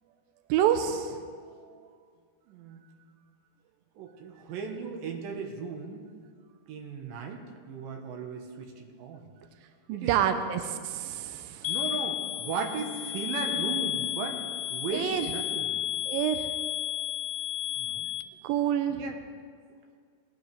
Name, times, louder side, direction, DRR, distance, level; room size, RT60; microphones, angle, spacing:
voice 1, 0.5-1.2 1.7-1.8 9.9-11.8 14.9-15.3 16.1-16.5 18.4-19.1, right 10 dB, 85° right, 8 dB, 2.0 m, -28 dB
voice 2, 2.5-2.9 4.0-6.0 6.7-7.4 7.7-9.2 9.9-10.1 11.7-14.4 14.7-15.7 17.8-18.1 19.0-19.2, right 5 dB, 70° right, 3 dB, 2.6 m, -36 dB
sound 1, 11.6-18.2, left 12 dB, 85° left, 2.6 m, -32 dB
19.0 x 12.0 x 3.4 m, 2.1 s
omnidirectional pair, 4.7 m